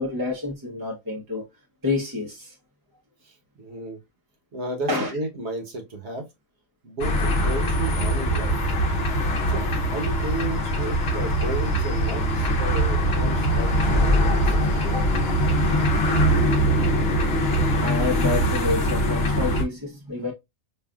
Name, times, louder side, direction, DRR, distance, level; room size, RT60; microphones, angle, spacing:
voice 1, 0.0-1.5 1.8-2.5 4.9-5.2 14.8-15.1 17.8-20.3, left 3 dB, 20° right, 0.6 m, -28 dB
voice 2, 3.2-4.0 4.5-6.3 6.8-8.6 9.5-14.7, right 1 dB, 55° right, 1.3 m, -33 dB
sound 1, 7.0-19.6, equal, 55° left, 0.9 m, -22 dB
5.5 x 2.4 x 2.3 m
omnidirectional pair, 1.4 m